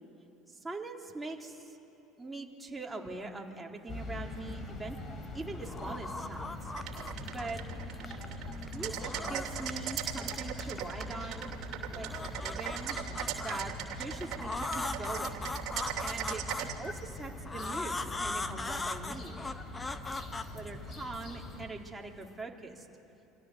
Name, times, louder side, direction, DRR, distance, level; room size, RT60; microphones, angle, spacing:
voice 1, 0.5-1.8 2.2-5.0 5.3-6.7 7.3-7.6 8.7-11.5 11.9-13.0 13.4-13.7 14.0-15.5 16.0-19.4 20.5-22.9, right 3 dB, 10° right, 0 dB, 3.7 m, -42 dB
sound 1, 3.9-21.7, left 2 dB, 35° left, 4.9 m, -43 dB
sound 2, 4.7-5.2 5.5-7.6 7.9-9.9 10.2-11.5 11.9-13.6 14.3-16.9 17.5-21.2, left 3 dB, 15° left, 1.4 m, -39 dB
sound 3, 6.8-16.7, right 11 dB, 50° right, 2.7 m, -39 dB
28.5 x 25.5 x 8.1 m, 2.9 s
figure-of-eight pair, 65°, 0 cm